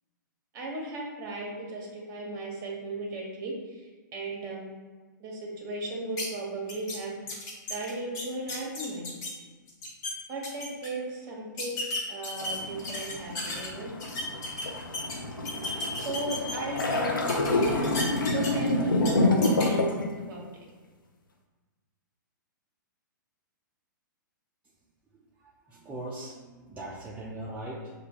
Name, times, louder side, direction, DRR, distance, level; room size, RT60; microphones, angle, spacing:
voice 1, 0.5-4.6 5.2-7.1 7.7-9.0 10.0-11.8 12.1-13.9 16.0-19.8 20.2-20.4, right 2 dB, 30° right, -2 dB, 1.4 m, -36 dB
sound 1, 6.2-6.3 6.7-7.0 7.3-9.3 9.7-10.1 10.4-10.9 11.6-13.7 14.0-15.1 15.4-16.9 17.3-18.7 19.0-19.1 19.4-19.7, left 2 dB, 30° left, 1.2 m, -34 dB
sound 2, 12.4-20.1, left 2 dB, 80° left, 0.7 m, -28 dB
voice 2, 25.1-27.9, right 1 dB, 10° right, -6 dB, 0.6 m, -40 dB
6.5 x 2.4 x 3.0 m, 1.4 s
figure-of-eight pair, 115°, 11 cm